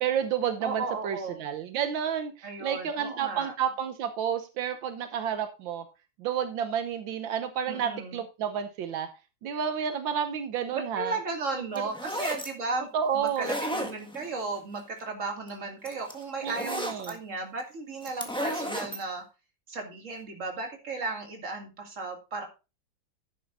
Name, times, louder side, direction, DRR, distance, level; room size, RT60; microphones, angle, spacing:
voice 1, 0.0-5.9 6.2-9.1 9.4-11.2 11.5-11.9 12.9-13.5 16.4-17.1, right 8 dB, 80° right, 9 dB, 1.6 m, -30 dB
voice 2, 0.6-1.4 2.4-3.5 7.7-8.2 10.7-12.9 13.1-19.2 19.7-22.5, right 3 dB, 40° right, 3 dB, 2.6 m, -35 dB
sound 1, 11.8-12.5 13.3-14.3 15.5-15.6 15.8-17.1 18.0-19.0, equal, 5° left, 1.4 m, -33 dB
11.5 x 9.2 x 2.6 m, 0.28 s
omnidirectional pair, 2.1 m